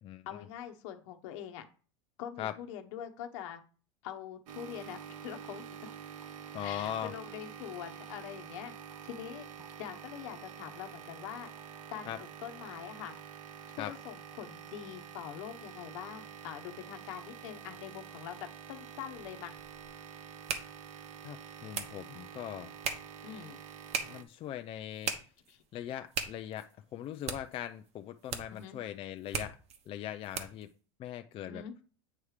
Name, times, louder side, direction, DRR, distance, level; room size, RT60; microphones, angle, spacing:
voice 1, 0.3-1.6 2.2-3.6 4.0-5.6 6.6-8.7 9.0-9.5 9.8-11.5 11.9-13.1 13.7-19.6 23.2-23.6 25.5-25.6 28.5-28.8 31.4-31.7, left 10 dB, 70° left, 5 dB, 1.0 m, -44 dB
sound 1, 4.5-24.2, right 8 dB, 80° right, 0.8 m, -48 dB
voice 2, 6.5-7.1 12.1-12.2 13.8-13.9 21.2-22.7 24.0-25.1 25.7-29.6 29.9-30.7 31.0-31.6, left 11 dB, 35° left, 8 dB, 0.4 m, -40 dB
sound 2, 20.2-30.7, right 6 dB, 40° right, 1.1 m, -42 dB
8.5 x 3.2 x 4.9 m, 0.39 s
supercardioid pair, 115°, 17 cm